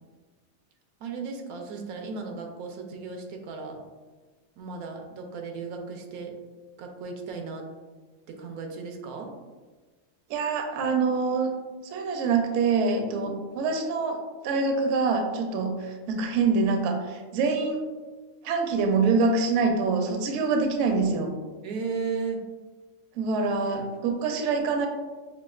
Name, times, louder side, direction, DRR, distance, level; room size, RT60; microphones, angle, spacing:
voice 1, 1.0-3.8 4.6-6.4 6.8-7.7 8.3-9.3 13.2-13.3 21.6-22.4, right 4 dB, 85° right, 3 dB, 1.1 m, -35 dB
voice 2, 10.3-11.5 11.9-14.2 14.4-17.8 18.4-21.3 23.2-24.9, right 4 dB, 70° right, 4 dB, 0.8 m, -25 dB
5.6 x 2.3 x 2.3 m, 1.3 s
omnidirectional pair, 1.5 m